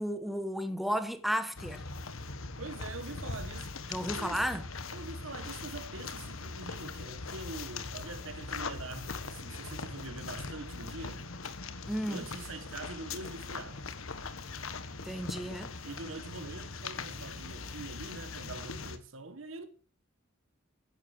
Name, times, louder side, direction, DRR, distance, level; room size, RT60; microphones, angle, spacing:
voice 1, 0.0-1.8 3.9-4.6 11.9-12.2 15.0-15.7, equal, ahead, 1.5 m, -33 dB
sound 1, 1.6-19.0, left 4 dB, 80° left, 1.5 m, -41 dB
voice 2, 2.6-3.7 4.2-4.5 4.9-11.3 12.1-13.8 15.8-19.7, right 3 dB, 70° right, 1.4 m, -44 dB
14.5 x 11.0 x 4.9 m
head